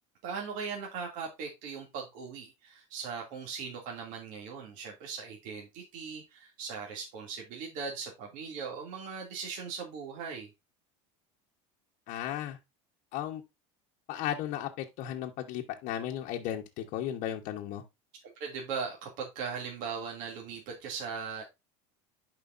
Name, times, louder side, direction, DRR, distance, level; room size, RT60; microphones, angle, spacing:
voice 1, 0.2-10.5 18.4-21.4, right 5 dB, 60° right, 2.5 m, -39 dB
voice 2, 12.1-12.6 13.1-13.4 14.1-17.8, left 11 dB, 55° left, 1.1 m, -35 dB
11.0 x 5.0 x 2.6 m
supercardioid pair, 130°, 16 cm